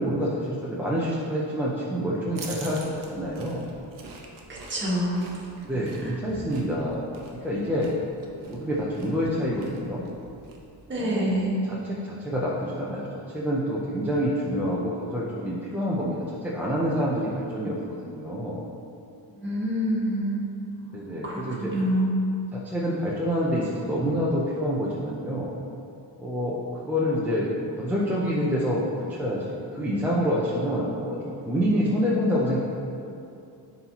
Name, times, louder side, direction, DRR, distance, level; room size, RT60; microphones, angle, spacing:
voice 1, 0.0-3.6 5.6-7.1 7.3-7.9 8.5-10.0 11.0-11.3 11.7-17.8 18.0-18.6 20.9-21.7 22.5-25.5 26.2-27.5 27.8-32.6, equal, 5° right, -7 dB, 0.6 m, -27 dB
sound 1, 2.3-11.0, right 3 dB, 50° right, 0.9 m, -45 dB
voice 2, 4.5-5.2 6.0-6.1 10.9-11.5 19.3-20.4 20.8-22.2, equal, 25° right, -5 dB, 1.5 m, -27 dB
11.0 x 4.1 x 2.9 m, 2.6 s
cardioid pair, 145°, 41 cm